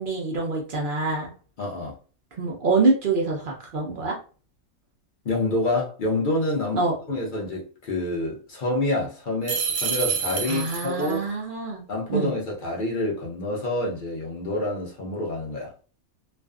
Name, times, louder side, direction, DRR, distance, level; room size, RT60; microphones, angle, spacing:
voice 1, 0.0-1.3 2.4-4.2 6.7-6.9 10.5-11.8 12.1-12.3, right 3 dB, 60° right, 0.5 m, -25 dB
voice 2, 1.6-2.0 5.2-11.3 11.9-15.7, left 1 dB, 60° left, 0.5 m, -27 dB
sound 1, 9.5-11.2, right 6 dB, 85° right, 1.1 m, -28 dB
2.5 x 2.3 x 2.3 m
omnidirectional pair, 1.5 m